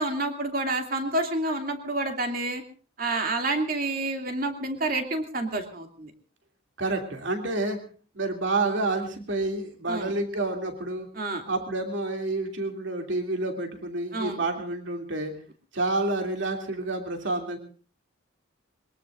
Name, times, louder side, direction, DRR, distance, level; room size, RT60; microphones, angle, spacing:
voice 1, 0.0-2.6 3.0-6.1 9.9-10.1 11.1-11.4 14.1-14.4, right 2 dB, 45° right, 4 dB, 2.7 m, -29 dB
voice 2, 6.8-7.8 8.1-11.1 11.5-15.3 15.7-17.6, right 2 dB, 65° right, 3 dB, 2.8 m, -29 dB
22.5 x 22.0 x 2.6 m, 0.39 s
head